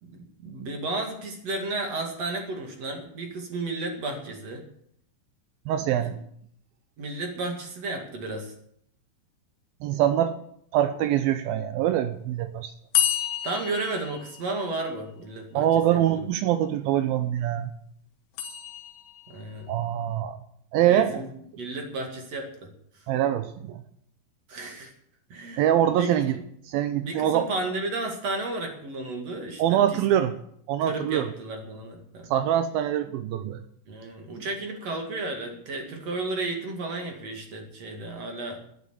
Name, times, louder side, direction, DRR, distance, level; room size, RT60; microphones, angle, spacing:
voice 1, 0.0-4.7 6.0-6.1 7.0-8.5 13.4-15.6 15.9-16.2 19.3-19.7 20.8-22.7 24.5-24.9 25.3-25.6 25.9-26.2 27.0-30.0 30.8-32.3 33.9-38.6, right 2 dB, 45° right, 3 dB, 2.7 m, -33 dB
voice 2, 5.7-6.2 9.8-10.4 10.7-12.7 15.5-17.7 19.7-20.4 20.7-21.2 23.1-23.8 25.6-26.3 26.7-27.5 29.6-30.4 30.7-31.3 32.3-33.6, right 11 dB, 90° right, 10 dB, 2.1 m, -24 dB
sound 1, 12.9-14.9 18.4-19.4, left 11 dB, 75° left, 3.7 m, -29 dB
12.5 x 9.7 x 8.3 m, 0.69 s
omnidirectional pair, 5.1 m